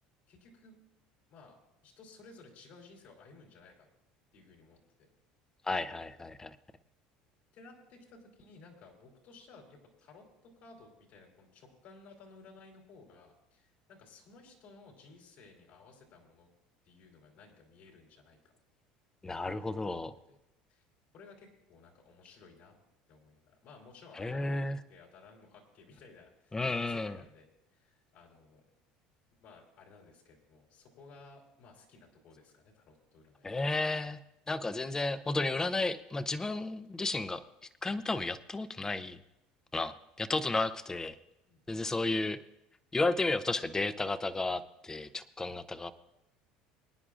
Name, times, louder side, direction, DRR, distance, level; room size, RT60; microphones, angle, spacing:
voice 1, 0.3-0.7 1.3-1.6 1.8-3.9 4.3-4.8 7.5-16.5 16.8-18.4 19.4-20.0 20.3-20.4 20.7-20.8 21.1-22.7 23.1-28.6 29.4-33.6 41.5-41.8, left 3 dB, 65° left, 0 dB, 3.7 m, -56 dB
voice 2, 5.6-6.6 19.2-20.1 24.2-24.8 26.5-27.2 33.4-34.2 34.5-37.4 37.8-39.2 39.7-41.2 41.7-42.4 42.9-45.9, left 2 dB, 15° left, 13 dB, 0.7 m, -33 dB
24.5 x 9.8 x 2.5 m, 0.87 s
supercardioid pair, 95°, 3 cm